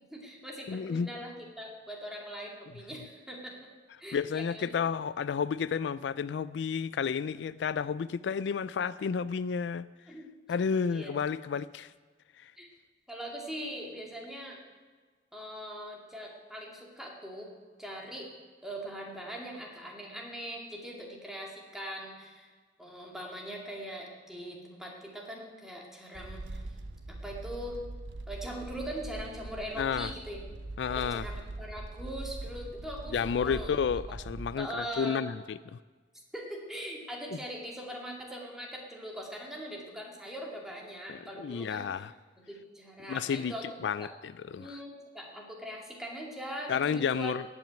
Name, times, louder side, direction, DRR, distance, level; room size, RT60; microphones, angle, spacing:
voice 1, 0.1-3.7 4.0-4.8 10.1-10.3 10.9-11.1 12.6-12.7 13.1-14.6 15.3-17.5 17.8-18.3 18.6-22.5 22.8-26.6 27.1-27.8 28.3-30.5 30.9-33.7 34.6-35.2 36.3-42.1 42.5-43.7 44.0-44.1 44.6-47.4, equal, 5° right, 2.4 m, -41 dB
voice 2, 0.7-1.1 4.1-9.9 10.5-11.9 12.4-12.5 29.8-30.1 30.8-31.3 33.1-35.8 41.1-42.1 43.1-43.5 43.8-44.8 46.7-47.4, left 6 dB, 75° left, 0.3 m, -31 dB
sound 1, 26.1-34.5, right 2 dB, 90° right, 0.9 m, -42 dB
17.0 x 6.2 x 8.9 m
head